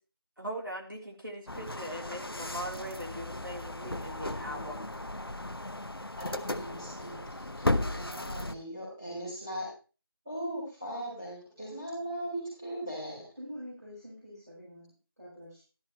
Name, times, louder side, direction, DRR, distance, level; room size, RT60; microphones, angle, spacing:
voice 1, 0.4-5.1, right 1 dB, 60° right, 0 dB, 3.2 m, -40 dB
sound 1, 1.5-8.5, left 1 dB, 70° left, 0.8 m, -35 dB
voice 2, 6.2-9.7 10.2-13.2, right 1 dB, 10° right, -12 dB, 4.2 m, -39 dB
voice 3, 13.4-15.6, equal, 40° right, -8 dB, 6.0 m, -46 dB
13.0 x 11.5 x 3.2 m, 0.34 s
figure-of-eight pair, 175°, 13 cm